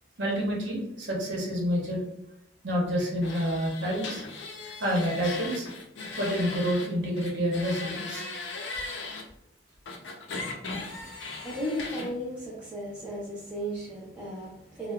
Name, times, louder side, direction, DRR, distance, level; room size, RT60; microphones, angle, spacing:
voice 1, 0.2-2.0 2.6-4.2 4.6-5.7 6.2-8.2 10.9-11.0, equal, 80° right, -3 dB, 0.9 m, -28 dB
sound 1, 3.2-6.9 7.2-9.2 9.9-12.1, left 3 dB, 75° left, 0.5 m, -38 dB
voice 2, 11.2-14.9, equal, 10° right, -8 dB, 0.5 m, -35 dB
3.1 x 2.0 x 2.3 m, 0.77 s
head